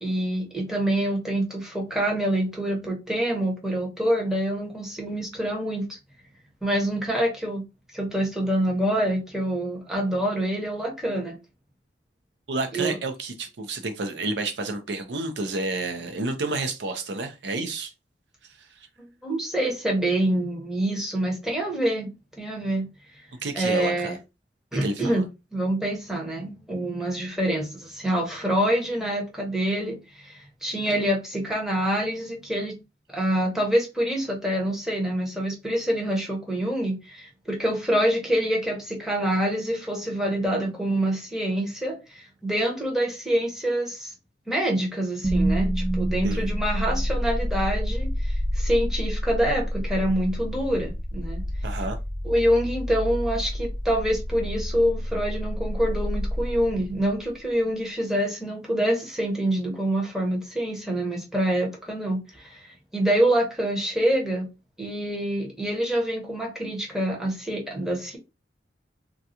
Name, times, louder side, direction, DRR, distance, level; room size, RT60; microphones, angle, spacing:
voice 1, 0.0-6.0 6.6-7.6 7.9-11.4 12.7-12.9 19.2-22.1 22.4-22.9 23.5-24.2 24.7-25.2 25.5-32.7 33.1-44.1 44.5-51.4 52.2-62.7 62.9-64.5 64.8-68.2, right 1 dB, 5° right, 1.0 m, -26 dB
voice 2, 12.5-17.9 18.6-18.9 23.4-24.2 24.8-25.2 30.9-31.0 46.2-46.5 51.6-52.0, right 2 dB, 75° right, 0.6 m, -30 dB
sound 1, 45.2-57.3, equal, 25° right, 0.4 m, -28 dB
3.8 x 2.3 x 2.7 m
head